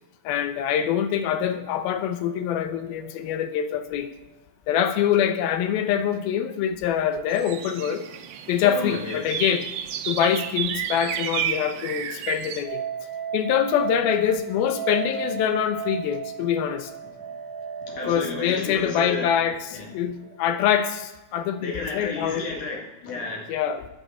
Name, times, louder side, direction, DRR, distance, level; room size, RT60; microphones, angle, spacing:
voice 1, 0.2-4.1 4.7-8.0 8.5-9.7 10.1-12.8 13.3-16.9 18.0-22.5 23.5-23.9, left 9 dB, 80° left, 10 dB, 2.6 m, -24 dB
sound 1, 1.9-5.1 5.3-5.4 12.6-20.6, right 7 dB, 55° right, 1.7 m, -36 dB
sound 2, 7.3-12.6, right 9 dB, 80° right, 2.6 m, -31 dB
voice 2, 8.6-9.2 17.9-19.3 21.6-23.5, left 3 dB, 60° left, 0 dB, 3.3 m, -32 dB
9.6 x 7.2 x 8.6 m, 1.0 s
omnidirectional pair, 4.5 m